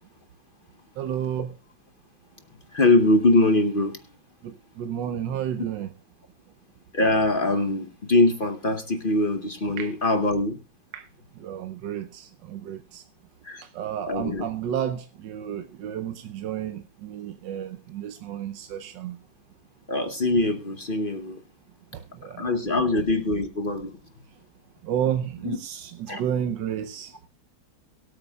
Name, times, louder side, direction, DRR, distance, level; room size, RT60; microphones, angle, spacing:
voice 1, 1.0-1.5 4.4-5.9 9.8-9.9 10.9-11.1 11.3-13.0 13.6-19.2 21.9-22.5 24.8-27.3, right 9 dB, 65° right, 1.3 m, -31 dB
voice 2, 2.7-4.0 6.9-10.6 13.4-13.6 14.0-14.5 19.9-21.4 22.4-24.0 25.4-25.6 26.1-26.2, left 2 dB, 65° left, 0.5 m, -23 dB
23.0 x 8.7 x 2.3 m
omnidirectional pair, 2.4 m